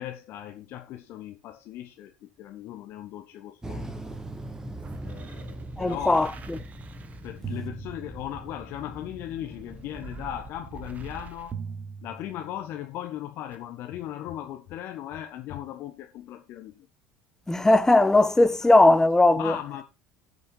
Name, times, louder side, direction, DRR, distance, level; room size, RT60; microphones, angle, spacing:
voice 1, 0.0-3.8 5.0-6.3 7.2-11.5 12.0-16.9 19.4-19.8, left 11 dB, 50° left, 1.2 m, -37 dB
sound 1, 3.6-9.9, right 1 dB, 10° right, 1.6 m, -40 dB
sound 2, 4.1-8.7 9.5-12.8 13.5-13.6, right 5 dB, 30° right, 1.3 m, -42 dB
voice 2, 5.8-6.6 17.5-19.5, left 2 dB, 10° left, 0.9 m, -19 dB
9.7 x 5.6 x 6.2 m
figure-of-eight pair, 65°, 5 cm